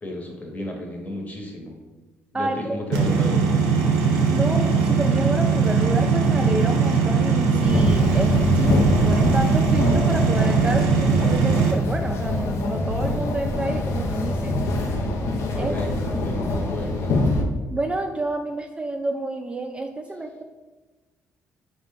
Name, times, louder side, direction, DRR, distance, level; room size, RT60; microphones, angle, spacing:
voice 1, 0.0-1.8 2.3-3.5 15.5-17.1, left 1 dB, 30° left, 1 dB, 0.9 m, -32 dB
voice 2, 2.3-2.8 3.6-3.7 4.3-14.5 15.6-15.8 17.7-20.4, right 2 dB, 20° right, 4 dB, 0.3 m, -29 dB
sound 1, 2.9-11.7, right 5 dB, 85° right, 0.5 m, -20 dB
sound 2, 7.6-17.4, left 2 dB, 65° left, 0.5 m, -24 dB
3.8 x 2.2 x 3.5 m, 1.2 s
supercardioid pair, 60°, 5 cm